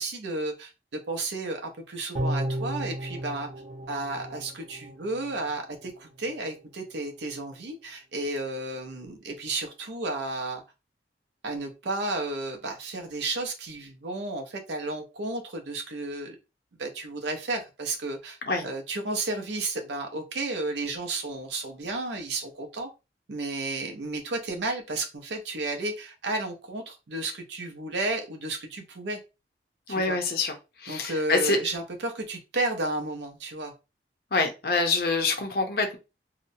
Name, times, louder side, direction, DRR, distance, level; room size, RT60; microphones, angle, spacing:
voice 1, 0.0-3.5 3.9-10.6 11.4-16.4 16.8-22.9 23.3-29.2 29.9-30.2 30.9-33.7, right 2 dB, 75° right, 0.6 m, -32 dB
sound 1, 2.1-5.5 5.8-5.9, right 1 dB, 40° right, 0.6 m, -34 dB
voice 2, 29.9-30.5 30.8-31.6 34.3-36.0, left 3 dB, 55° left, 0.6 m, -26 dB
2.8 x 2.1 x 2.6 m
head